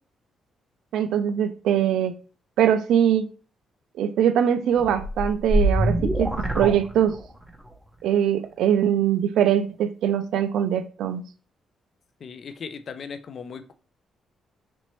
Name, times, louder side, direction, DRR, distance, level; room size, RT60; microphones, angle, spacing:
voice 1, 0.9-2.1 2.6-3.3 4.0-7.2 8.0-11.2, right 9 dB, 80° right, 0.4 m, -22 dB
sound 1, 4.8-7.5, equal, 5° right, 0.6 m, -24 dB
voice 2, 12.2-13.7, left 6 dB, 45° left, 0.4 m, -37 dB
4.3 x 3.0 x 3.0 m
cardioid pair, 145°, 0 cm